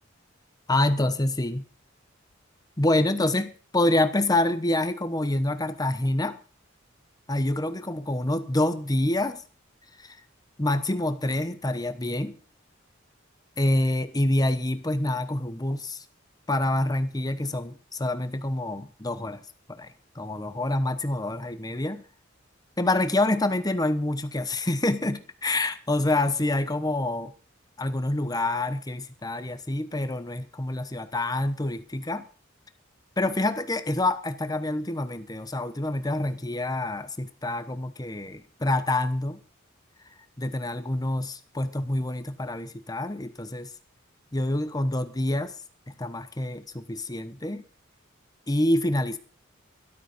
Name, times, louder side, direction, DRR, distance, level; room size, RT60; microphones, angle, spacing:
voice 1, 0.7-1.6 2.8-6.4 7.3-9.4 10.0-10.2 10.6-12.4 13.6-16.0 16.5-19.4 19.7-22.0 22.8-27.3 27.8-32.2 33.2-39.4 40.4-43.7 44.3-45.5 46.0-47.6 48.5-49.2, left 1 dB, 20° left, 11 dB, 1.0 m, -27 dB
13.0 x 12.0 x 5.1 m, 0.39 s
head